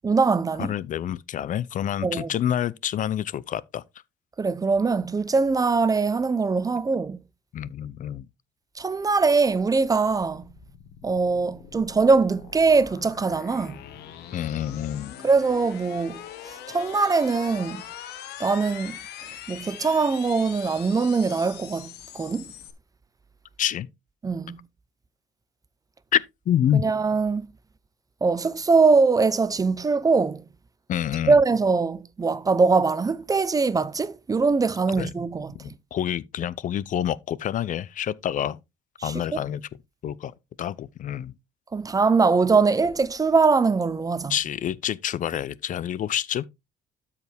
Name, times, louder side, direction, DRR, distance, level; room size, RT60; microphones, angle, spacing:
voice 1, 0.0-0.7 2.0-2.3 4.4-7.2 8.8-10.5 11.0-13.8 15.2-16.2 16.7-17.8 18.4-19.0 19.5-22.5 24.2-24.6 26.8-27.5 28.2-30.4 31.3-35.5 39.0-39.4 41.7-44.3, right 4 dB, 20° right, 0.6 m, -22 dB
voice 2, 0.6-3.8 7.5-8.3 14.3-15.1 23.6-23.9 26.1-26.8 30.9-31.4 34.9-35.1 35.6-38.6 39.0-39.6 40.0-41.3 44.3-46.5, left 10 dB, 50° left, 0.6 m, -27 dB
sound 1, 8.9-22.7, left 10 dB, 80° left, 1.6 m, -42 dB
12.5 x 4.8 x 3.5 m
cardioid pair, 110°, 17 cm